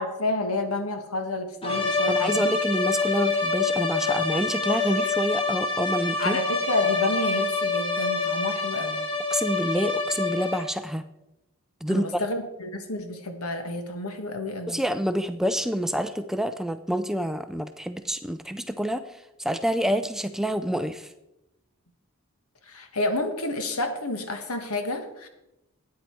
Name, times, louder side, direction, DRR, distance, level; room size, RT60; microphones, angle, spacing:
voice 1, 0.0-2.5 6.2-9.0 11.9-14.8 22.7-25.3, left 2 dB, 80° left, 7 dB, 1.5 m, -30 dB
sound 1, 1.6-10.8, left 4 dB, 25° left, 1.5 m, -26 dB
voice 2, 2.1-6.4 9.3-11.0 11.8-12.2 14.7-21.1, equal, ahead, 10 dB, 0.3 m, -27 dB
13.0 x 9.3 x 4.6 m, 0.92 s
head